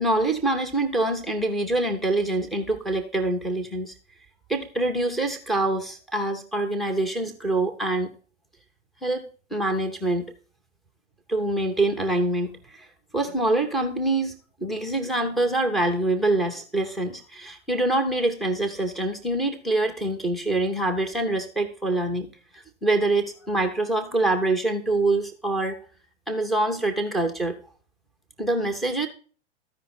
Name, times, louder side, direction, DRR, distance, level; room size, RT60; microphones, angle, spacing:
voice 1, 0.0-3.9 4.5-8.1 9.0-10.3 11.3-12.9 13.1-25.8 26.3-27.6 28.4-29.1, right 2 dB, ahead, 5 dB, 0.3 m, -25 dB
13.0 x 5.2 x 4.0 m, 0.39 s
figure-of-eight pair, 100°, 37 cm